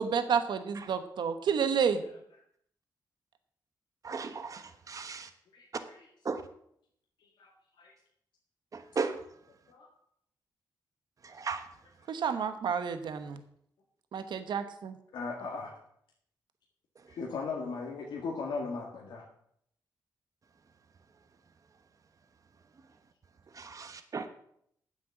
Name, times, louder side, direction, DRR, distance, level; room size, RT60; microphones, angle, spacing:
voice 1, 0.0-2.0 12.1-13.4 14.1-15.0, right 7 dB, 75° right, 9 dB, 1.1 m, -30 dB
voice 2, 4.0-4.6 4.9-5.2 6.3-6.4 9.0-9.1 11.4-11.6 23.8-23.9 24.1-24.3, right 5 dB, 45° right, 8 dB, 1.1 m, -33 dB
voice 3, 5.5-6.1 7.4-7.5 7.8-7.9 9.7-9.9 15.1-15.7 17.1-19.2, left 4 dB, 85° left, -2 dB, 1.9 m, -37 dB
10.0 x 7.6 x 7.3 m, 0.70 s
cardioid pair, 75°, 8 cm